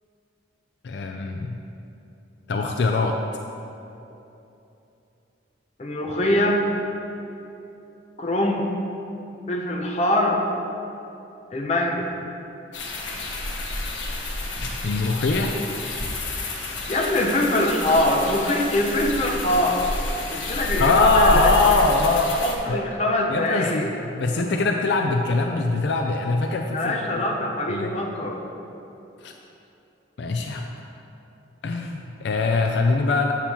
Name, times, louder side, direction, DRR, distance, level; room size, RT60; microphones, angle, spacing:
voice 1, 0.8-1.6 2.5-3.1 14.8-15.5 20.8-22.4 22.7-22.8 23.3-26.9 27.7-27.9 29.2-29.3 30.2-30.7 31.6-33.3, left 3 dB, 65° left, 3 dB, 0.4 m, -22 dB
voice 2, 5.8-6.6 8.2-8.7 9.5-10.4 11.5-12.1 16.9-19.9 20.3-21.8 22.4-23.9 26.7-28.4, left 1 dB, 35° left, -1 dB, 0.7 m, -23 dB
sound 1, 12.7-22.6, left 2 dB, 85° left, 1.1 m, -29 dB
8.2 x 7.3 x 2.9 m, 2.9 s
head